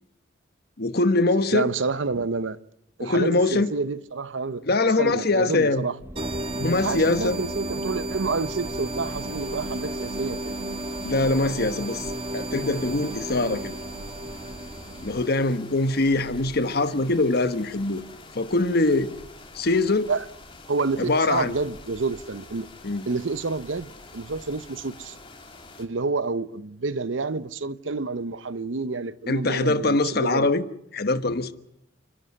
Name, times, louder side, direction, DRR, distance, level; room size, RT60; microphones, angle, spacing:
voice 1, 0.8-1.7 3.0-3.7 4.6-5.9 6.5-7.4 11.0-12.1 12.3-13.7 15.0-18.0 18.3-19.1 19.5-20.1 21.0-21.5 22.8-23.1 29.3-30.6 30.9-31.5, left 2 dB, 55° left, 1.2 m, -23 dB
voice 2, 1.5-2.6 3.0-4.7 5.0-6.0 6.8-10.5 20.1-20.2 20.7-22.7 23.1-25.1 25.8-30.5, right 3 dB, 90° right, 0.8 m, -29 dB
sound 1, 6.0-15.2, equal, 10° right, 1.4 m, -43 dB
sound 2, 6.2-15.5, right 1 dB, 30° right, 1.6 m, -33 dB
sound 3, 8.4-25.8, left 3 dB, 30° left, 2.9 m, -47 dB
29.5 x 11.5 x 9.7 m
head